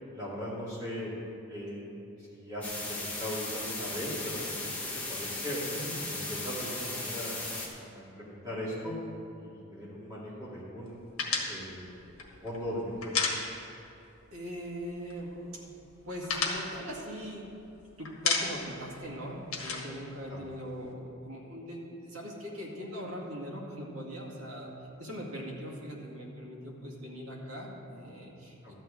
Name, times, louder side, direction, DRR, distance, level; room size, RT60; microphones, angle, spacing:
voice 1, 0.1-1.1 1.5-1.8 2.2-4.7 5.1-5.6 6.0-7.4 7.8-8.9 9.4-11.0 11.5-13.1 20.3-20.4 28.6-28.7, equal, 20° right, -9 dB, 2.4 m, -39 dB
sound 1, 2.6-7.7, left 2 dB, 5° left, 1.3 m, -37 dB
sound 2, 11.2-14.0 14.2-14.4 14.7-15.4 15.7-17.7 18.1-18.8 19.1-20.9, left 5 dB, 80° left, 1.6 m, -33 dB
voice 2, 14.3-15.7 16.0-17.5 18.0-24.7 25.0-28.7, equal, 85° right, -3 dB, 2.1 m, -41 dB
13.0 x 4.5 x 8.6 m, 2.7 s
head